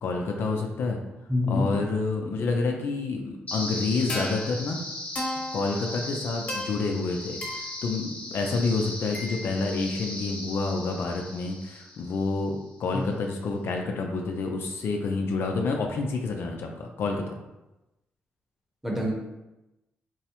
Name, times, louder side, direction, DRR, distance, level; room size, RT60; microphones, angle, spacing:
voice 1, 0.0-1.0 1.5-4.8 5.5-17.4, left 3 dB, 65° left, 2 dB, 0.4 m, -28 dB
voice 2, 1.3-1.7 12.9-13.0 18.8-19.3, left 2 dB, 5° right, -2 dB, 0.9 m, -26 dB
sound 1, 3.5-12.5, left 1 dB, 35° left, 1.1 m, -36 dB
4.5 x 2.0 x 2.9 m, 0.99 s
cardioid pair, 85°, 4 cm